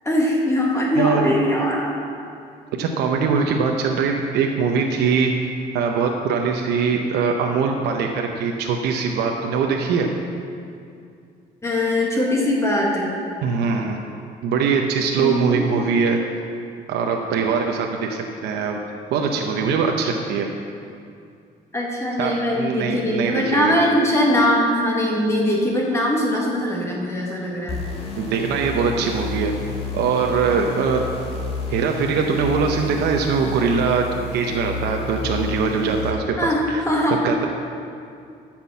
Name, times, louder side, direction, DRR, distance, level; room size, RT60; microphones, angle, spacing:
voice 1, 0.1-1.9 11.6-13.1 15.2-15.7 21.7-27.8 36.4-37.2, left 1 dB, 15° left, -3 dB, 1.7 m, -21 dB
voice 2, 1.0-1.3 2.8-5.3 5.7-10.1 13.4-14.0 14.4-16.2 16.9-18.8 19.1-20.5 22.2-23.7 28.2-29.5 29.9-31.0 31.7-36.4 36.7-36.8 37.2-37.5, right 5 dB, 75° right, 2 dB, 0.8 m, -22 dB
sound 1, 27.7-36.1, left 4 dB, 35° left, 1.9 m, -31 dB
9.9 x 6.0 x 7.2 m, 2.4 s
cardioid pair, 110°, 17 cm